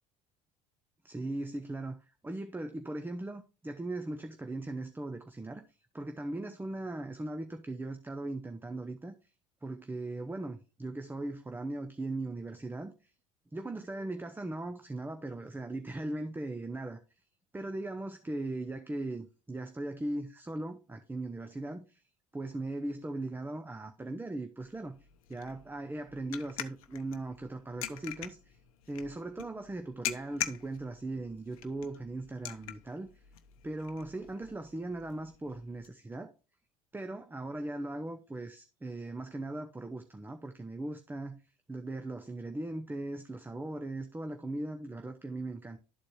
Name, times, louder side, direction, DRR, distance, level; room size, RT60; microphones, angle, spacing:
voice 1, 1.0-2.0 2.2-5.6 5.9-9.1 9.6-13.1 13.5-17.0 17.5-22.0 22.3-25.0 25.3-28.6 28.9-33.1 33.6-36.3 36.9-41.4 41.7-45.8, right 2 dB, 10° right, 0.7 m, -39 dB
sound 1, 24.6-35.9, left 11 dB, 90° left, 0.7 m, -44 dB
12.0 x 4.3 x 3.2 m
hypercardioid pair, 75°, 18 cm